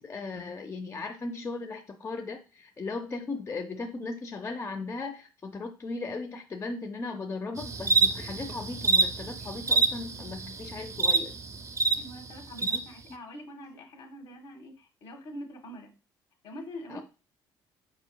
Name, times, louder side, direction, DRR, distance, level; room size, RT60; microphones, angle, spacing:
voice 1, 0.0-11.4 16.9-17.0, left 3 dB, 30° left, 4 dB, 0.6 m, -37 dB
sound 1, 7.6-11.9 12.6-12.8, right 4 dB, 30° right, 0.6 m, -26 dB
voice 2, 12.0-15.9 16.4-17.0, equal, 60° left, 3 dB, 1.5 m, -44 dB
4.9 x 4.5 x 2.2 m, 0.33 s
hypercardioid pair, 55°, 10 cm